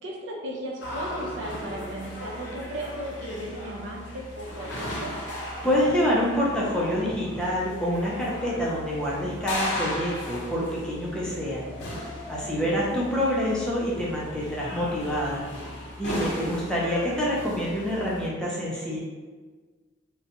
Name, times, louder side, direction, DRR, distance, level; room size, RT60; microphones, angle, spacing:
voice 1, 0.0-5.1 12.4-12.8 16.4-16.7, right 1 dB, 70° right, -1 dB, 0.5 m, -36 dB
sound 1, 0.8-18.3, left 1 dB, 60° left, 0.6 m, -36 dB
voice 2, 5.6-11.6 12.3-15.4 16.0-19.0, equal, 5° left, -6 dB, 0.4 m, -27 dB
2.5 x 2.1 x 2.7 m, 1.4 s
head